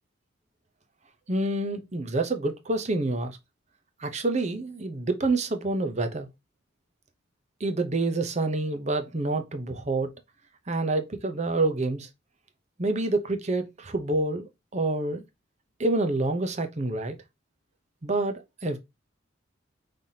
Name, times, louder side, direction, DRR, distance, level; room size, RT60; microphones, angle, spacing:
voice 1, 1.3-3.4 4.0-6.3 7.6-10.1 10.7-12.1 12.8-15.2 15.8-17.2 18.0-18.8, right 2 dB, 35° right, 0.7 m, -27 dB
5.6 x 3.4 x 2.8 m
head